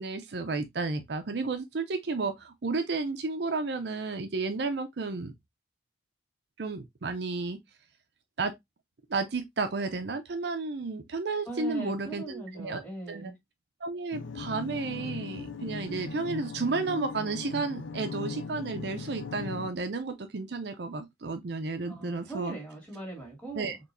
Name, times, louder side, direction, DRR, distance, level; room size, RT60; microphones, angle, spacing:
voice 1, 0.0-5.3 6.6-7.6 8.4-8.5 9.1-12.8 13.1-13.3 13.8-22.5 23.5-23.8, right 3 dB, 65° right, 0.5 m, -32 dB
voice 2, 11.5-13.4 21.9-23.8, right 3 dB, 10° left, 2.2 m, -40 dB
sound 1, 14.1-19.7, left 4 dB, 80° left, 0.5 m, -38 dB
4.4 x 3.0 x 2.6 m
head